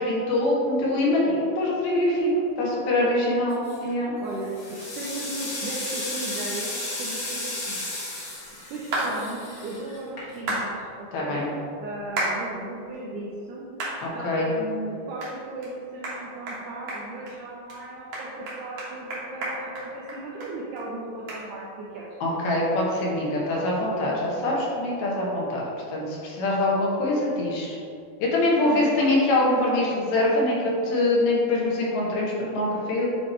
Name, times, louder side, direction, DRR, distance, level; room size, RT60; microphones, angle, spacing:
voice 1, 0.0-2.3 2.6-4.2 11.1-11.5 14.0-14.5 22.2-25.6 25.9-27.8 28.2-33.1, left 1 dB, 75° left, -4 dB, 3.0 m, -24 dB
voice 2, 2.6-3.1 4.2-7.9 8.7-11.4 11.8-13.7 14.1-22.1 28.6-29.1, right 2 dB, 80° right, -5 dB, 1.8 m, -36 dB
sound 1, 3.5-3.9 4.4-10.6, left 2 dB, 50° left, 1.6 m, -34 dB
sound 2, 8.9-9.1 10.5-10.7 12.2-12.4 12.9-13.0 13.8-14.0 14.4-14.5 15.2-15.3 15.6-15.7 16.0-16.2 16.5-16.6 16.9-17.3 17.7-17.8 18.1-20.5 20.8-20.9 21.3-21.4, right 2 dB, 60° right, 1.4 m, -30 dB
9.3 x 3.2 x 4.3 m, 2.5 s
omnidirectional pair, 4.5 m